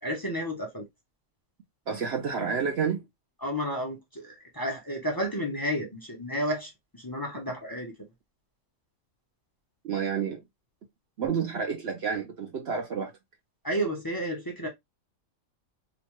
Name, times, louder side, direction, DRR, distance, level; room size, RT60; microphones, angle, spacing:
voice 1, 0.0-0.9 3.4-7.9 13.6-14.7, equal, 25° left, 0.5 m, -31 dB
voice 2, 1.9-3.0 9.8-10.4 11.2-13.1, right 6 dB, 60° right, 0.8 m, -29 dB
3.0 x 2.2 x 2.9 m
omnidirectional pair, 1.5 m